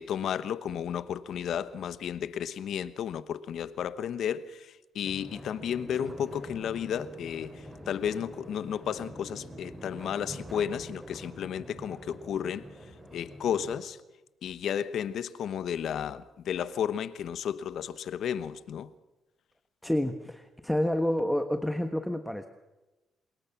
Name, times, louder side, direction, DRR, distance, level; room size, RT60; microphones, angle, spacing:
voice 1, 0.0-12.7 13.1-14.0 14.4-18.9, left 8 dB, 70° left, 1.1 m, -33 dB
sound 1, 5.0-13.8, equal, 15° right, 7.7 m, -45 dB
voice 2, 19.8-22.5, left 1 dB, 5° left, 1.3 m, -29 dB
25.5 x 21.0 x 6.0 m
cardioid pair, 90°, 0 cm